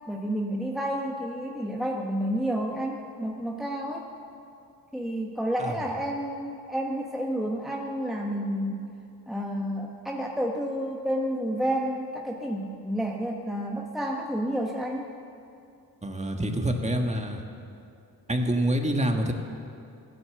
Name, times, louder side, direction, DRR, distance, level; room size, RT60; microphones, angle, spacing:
voice 1, 0.1-4.0 4.9-8.9 9.3-15.1, equal, ahead, -1 dB, 1.3 m, -30 dB
voice 2, 16.0-17.4 18.3-19.3, right 1 dB, 15° right, 3 dB, 1.7 m, -26 dB
15.5 x 10.5 x 7.8 m, 2.5 s
cardioid pair, 80°, 38 cm